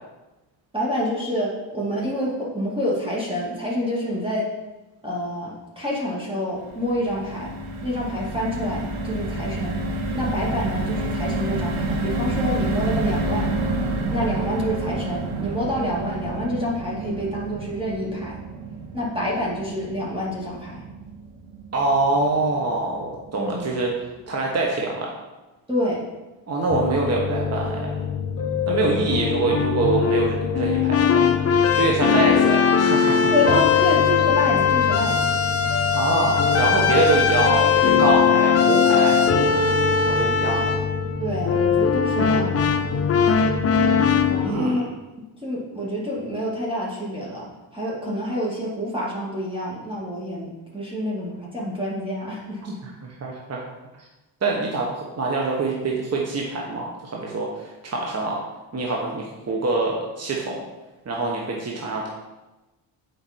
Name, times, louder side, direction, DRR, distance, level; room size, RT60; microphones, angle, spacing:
voice 1, 0.7-4.5 5.0-7.5 7.8-9.8 10.1-13.5 14.1-18.4 18.9-20.8 23.4-23.7 25.7-26.0 28.9-29.0 33.3-35.2 41.2-42.8 44.3-44.9 45.4-47.5 47.7-52.8, equal, 10° right, -6 dB, 2.1 m, -27 dB
sound 1, 6.6-22.9 23.3-23.4 23.7-23.9, right 2 dB, 85° right, 1.1 m, -29 dB
voice 2, 21.7-25.1 26.5-28.0 28.7-31.3 31.7-33.3 35.9-39.2 40.1-40.8 44.4-44.8 52.8-52.9 53.2-53.6 54.0-54.1 54.4-58.4 58.7-60.6 61.0-62.1, right 3 dB, 35° right, -1 dB, 1.2 m, -25 dB
sound 2, 26.7-44.5, left 6 dB, 30° left, 0.7 m, -20 dB
7.3 x 5.1 x 4.3 m, 1.1 s
cardioid pair, 90°, 46 cm